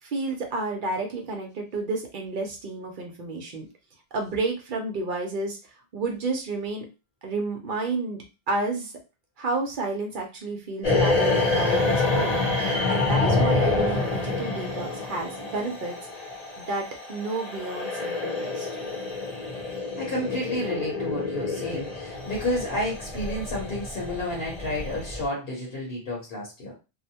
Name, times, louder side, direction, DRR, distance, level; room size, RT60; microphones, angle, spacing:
voice 1, 0.0-3.7 4.1-6.9 7.2-8.9 9.4-12.4 12.9-16.3 16.6-18.7, right 3 dB, 55° right, 2 dB, 0.7 m, -31 dB
sound 1, 10.8-25.2, left 3 dB, 40° left, 0.8 m, -27 dB
voice 2, 19.7-26.7, left 1 dB, 65° left, -2 dB, 1.1 m, -31 dB
2.6 x 2.1 x 2.7 m, 0.29 s
omnidirectional pair, 1.1 m